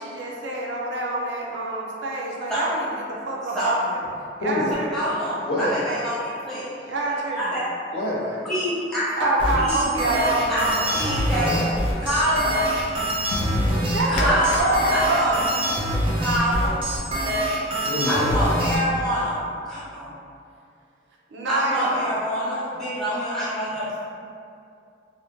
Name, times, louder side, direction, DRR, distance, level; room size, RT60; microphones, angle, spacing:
voice 1, 0.0-2.9 3.3-4.0 4.4-5.1 6.9-7.6 8.2-8.4 9.1-10.9 13.8-15.4 21.3-22.1, right 2 dB, 90° right, -3 dB, 0.5 m, -26 dB
voice 2, 4.9-6.6 7.4-7.6 8.4-9.8 10.5-10.6 10.9-11.7 12.0-12.7 14.1-15.8 16.2-16.8 18.1-19.4 19.7-20.1 21.5-24.0, equal, 5° left, -11 dB, 0.8 m, -25 dB
voice 3, 5.5-5.8 7.9-8.3 11.4-11.7 13.2-14.2 14.6-14.7 15.8-16.3 17.8-18.5, left 1 dB, 60° left, -8 dB, 0.7 m, -29 dB
sound 1, 9.4-18.8, equal, 30° right, 0.4 m, -25 dB
sound 2, 10.4-17.2, left 1 dB, 75° left, 0.3 m, -35 dB
2.5 x 2.0 x 2.9 m, 2.4 s
head